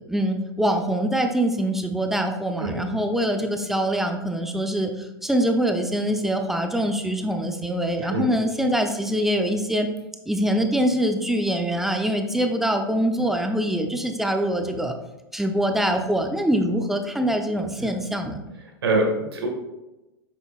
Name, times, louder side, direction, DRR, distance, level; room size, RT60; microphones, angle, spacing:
voice 1, 0.1-9.9 10.3-14.9 15.3-18.5, equal, ahead, 4 dB, 0.7 m, -24 dB
voice 2, 18.8-19.5, right 2 dB, 80° right, 0 dB, 1.8 m, -24 dB
7.9 x 5.4 x 2.4 m, 1.0 s
hypercardioid pair, 105°, 13 cm